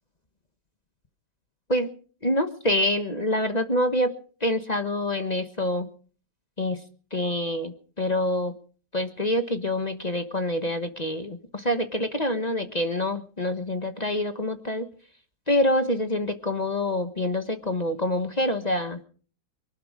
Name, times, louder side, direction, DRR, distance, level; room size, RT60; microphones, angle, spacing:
voice 1, 2.2-4.1 4.4-5.9 6.6-6.8 7.1-8.5 8.9-14.9 15.5-19.0, left 1 dB, 30° left, 8 dB, 1.2 m, -26 dB
23.5 x 11.5 x 4.9 m, 0.43 s
omnidirectional pair, 1.7 m